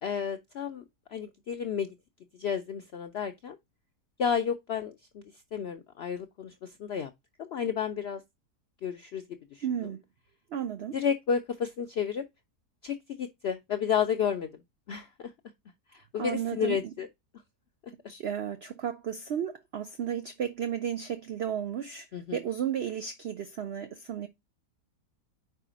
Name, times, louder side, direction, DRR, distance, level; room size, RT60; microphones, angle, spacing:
voice 1, 0.0-0.8 1.1-1.9 2.4-3.6 4.2-7.1 7.4-8.2 8.8-9.2 9.5-9.9 10.9-12.2 12.8-15.3 15.9-17.1 17.8-17.9 22.1-22.4, left 7 dB, 85° left, 0.5 m, -32 dB
voice 2, 9.6-10.0 10.5-11.0 16.2-16.9 18.1-24.3, right 9 dB, 65° right, 0.6 m, -33 dB
4.9 x 4.7 x 4.9 m
omnidirectional pair, 1.7 m